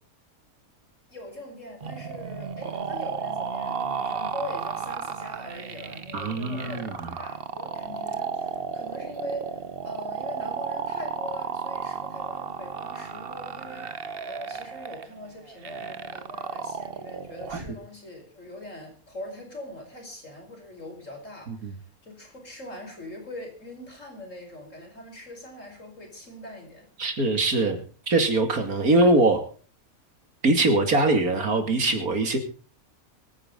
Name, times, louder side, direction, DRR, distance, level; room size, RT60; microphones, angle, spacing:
voice 1, 1.1-26.9, left 1 dB, 60° left, 2 dB, 5.5 m, -41 dB
sound 1, 1.8-17.8, right 6 dB, 45° right, 1.1 m, -34 dB
voice 2, 6.1-7.1 17.5-17.6 21.5-21.7 27.0-27.8 28.1-29.4 30.4-32.4, right 2 dB, 80° right, 6 dB, 2.9 m, -22 dB
24.5 x 9.8 x 3.8 m, 0.40 s
omnidirectional pair, 1.5 m